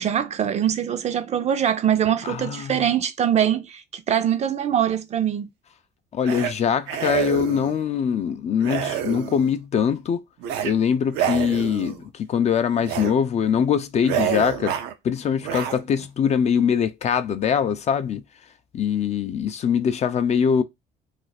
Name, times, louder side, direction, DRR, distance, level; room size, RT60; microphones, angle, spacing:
voice 1, 0.0-5.5, right 9 dB, 40° right, 0.4 m, -23 dB
voice 2, 2.2-2.9 6.1-10.2 10.6-14.8 15.0-18.2 18.7-20.6, left 7 dB, 40° left, 0.4 m, -23 dB
sound 1, 6.2-6.5 6.9-7.8 8.6-9.5 10.4-10.7 11.1-12.0 12.8-13.1 13.5-13.6 14.0-14.9 15.4-16.1, right 10 dB, 90° right, 0.5 m, -27 dB
2.5 x 2.4 x 4.0 m
cardioid pair, 110°, 17 cm